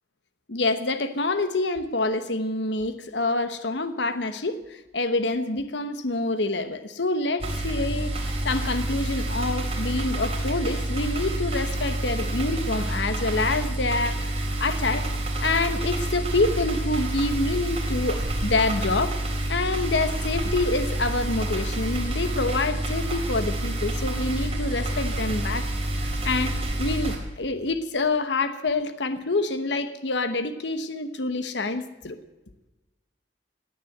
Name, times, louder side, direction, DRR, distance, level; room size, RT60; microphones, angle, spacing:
voice 1, 0.5-8.1 8.4-15.1 15.4-19.2 19.5-25.7 26.0-32.2, left 2 dB, 70° left, 10 dB, 1.1 m, -27 dB
sound 1, 7.4-27.2, right 1 dB, 35° right, 3.7 m, -28 dB
17.5 x 10.0 x 7.9 m, 1.1 s
head